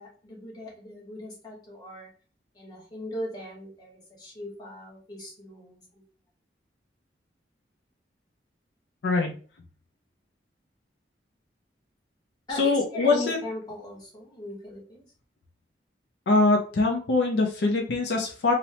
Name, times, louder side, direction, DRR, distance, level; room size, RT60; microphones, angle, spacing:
voice 1, 0.0-2.1 2.5-6.0 12.5-15.0, left 1 dB, 25° left, -4 dB, 1.0 m, -39 dB
voice 2, 12.6-13.4 16.3-18.5, left 3 dB, 70° left, 1 dB, 0.5 m, -23 dB
2.9 x 2.0 x 2.7 m, 0.40 s
head